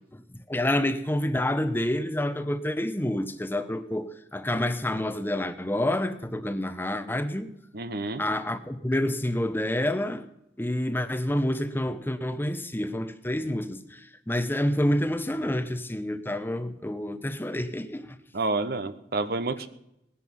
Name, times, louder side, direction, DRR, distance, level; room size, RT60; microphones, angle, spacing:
voice 1, 0.5-7.5 8.2-10.3 10.6-18.2, left 1 dB, 10° left, 0.8 m, -28 dB
voice 2, 7.7-8.2 18.3-19.7, right 3 dB, 60° right, 1.0 m, -29 dB
19.0 x 11.0 x 5.5 m
head